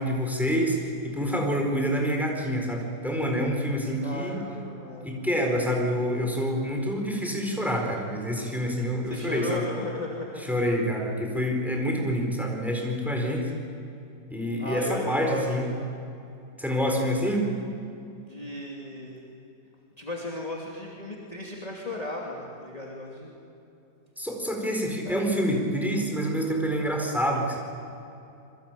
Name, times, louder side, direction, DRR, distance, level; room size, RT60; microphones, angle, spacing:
voice 1, 0.0-4.4 5.0-9.7 10.4-13.5 14.3-15.7 16.6-17.5 24.2-27.6, equal, ahead, 1 dB, 4.3 m, -27 dB
voice 2, 4.0-5.1 9.1-10.4 14.6-15.4 18.2-19.2 20.0-23.3 25.0-25.3, left 2 dB, 20° left, -3 dB, 2.9 m, -35 dB
27.5 x 23.0 x 9.1 m, 2.7 s
omnidirectional pair, 1.9 m